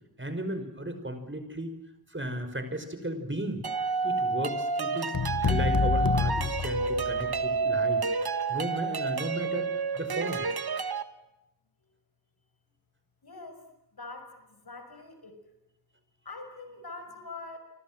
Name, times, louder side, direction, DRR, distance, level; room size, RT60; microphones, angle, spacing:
voice 1, 0.2-1.8 2.1-3.6 4.0-8.1 8.5-10.4, right 1 dB, 30° right, 9 dB, 5.6 m, -35 dB
sound 1, 3.6-11.0, right 4 dB, 85° right, 1.5 m, -29 dB
sound 2, 5.1-7.4, left 6 dB, 65° left, 1.3 m, -28 dB
voice 2, 13.2-13.7 13.9-15.4 16.2-17.6, left 3 dB, 85° left, 7 dB, 6.1 m, -44 dB
29.5 x 25.5 x 7.6 m, 0.94 s
wide cardioid pair, 70°, 36 cm